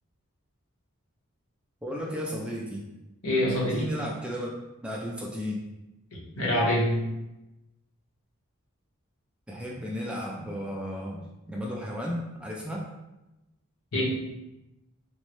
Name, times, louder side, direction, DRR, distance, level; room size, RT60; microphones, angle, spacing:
voice 1, 1.8-2.9 3.7-4.5 4.8-5.6 9.5-11.2 11.5-12.9, equal, 5° right, -3 dB, 0.3 m, -34 dB
voice 2, 3.2-3.8 6.1-7.1 13.9-14.1, left 1 dB, 85° left, -5 dB, 1.1 m, -25 dB
3.6 x 2.1 x 3.0 m, 0.97 s
head